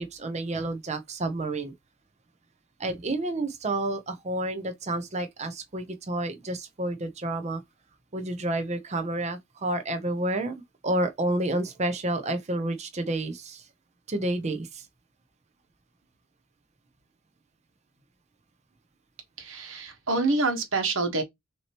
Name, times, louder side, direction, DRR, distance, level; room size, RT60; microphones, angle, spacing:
voice 1, 0.0-1.7 2.8-7.6 8.1-13.6 14.1-14.9, right 1 dB, 35° right, 0.7 m, -30 dB
voice 2, 19.4-21.2, right 3 dB, 70° right, 1.4 m, -26 dB
6.2 x 2.9 x 2.9 m
head